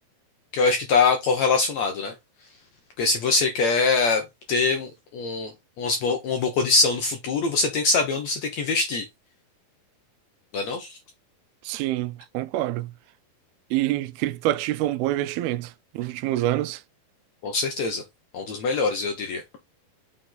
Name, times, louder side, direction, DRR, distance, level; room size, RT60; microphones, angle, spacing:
voice 1, 0.5-2.1 3.0-5.5 5.8-9.0 10.5-11.0 17.4-18.0 18.3-19.4, left 4 dB, 70° left, 1.7 m, -23 dB
voice 2, 11.6-12.9 13.7-16.8, right 15 dB, 90° right, 2.5 m, -26 dB
6.3 x 4.3 x 3.8 m
omnidirectional pair, 4.3 m